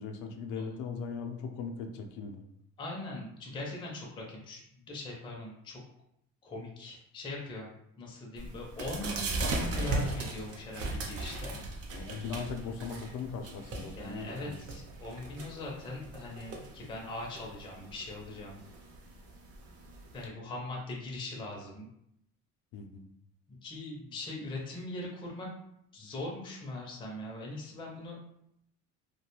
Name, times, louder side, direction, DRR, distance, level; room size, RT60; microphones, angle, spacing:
voice 1, 0.0-2.4 11.9-14.6 22.7-23.0, left 5 dB, 85° left, 5 dB, 0.5 m, -39 dB
voice 2, 2.8-4.6 4.9-5.8 6.4-7.7 8.0-11.6 13.9-18.6 20.1-21.9 23.6-25.5 25.9-28.2, left 2 dB, 15° left, -2 dB, 0.4 m, -41 dB
sound 1, 8.4-20.2, right 2 dB, 50° right, 0.5 m, -38 dB
2.3 x 2.1 x 2.9 m, 0.76 s
cardioid pair, 145°, 30 cm